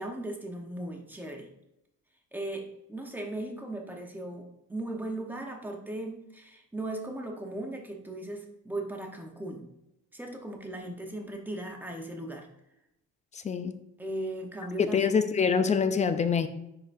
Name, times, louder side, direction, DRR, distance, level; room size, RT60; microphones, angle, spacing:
voice 1, 0.0-1.5 2.3-9.6 10.1-12.5 14.0-15.0, right 1 dB, 5° right, 2 dB, 0.8 m, -37 dB
voice 2, 13.3-13.8 14.8-16.5, left 6 dB, 20° left, 10 dB, 0.3 m, -25 dB
10.0 x 3.8 x 2.6 m, 0.84 s
cardioid pair, 160°, 34 cm